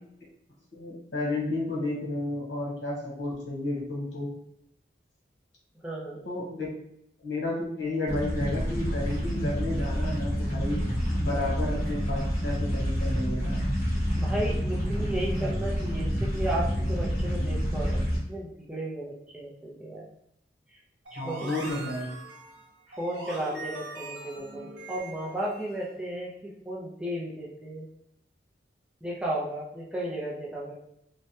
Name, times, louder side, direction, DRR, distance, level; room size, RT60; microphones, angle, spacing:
voice 1, 0.7-4.3 6.2-6.7 7.2-10.8 11.2-13.6 21.2-22.2, left 2 dB, 85° left, -4 dB, 1.1 m, -32 dB
voice 2, 5.8-6.2 14.2-18.0 18.3-20.0 20.7-20.8 21.1-21.7 22.9-26.3 26.7-27.9 29.0-30.7, right 1 dB, 5° right, -5 dB, 0.5 m, -34 dB
sound 1, 8.1-18.2, equal, 20° left, 1.3 m, -28 dB
sound 2, 21.0-26.0, right 2 dB, 80° right, 1.1 m, -42 dB
3.2 x 2.2 x 2.7 m, 0.75 s
head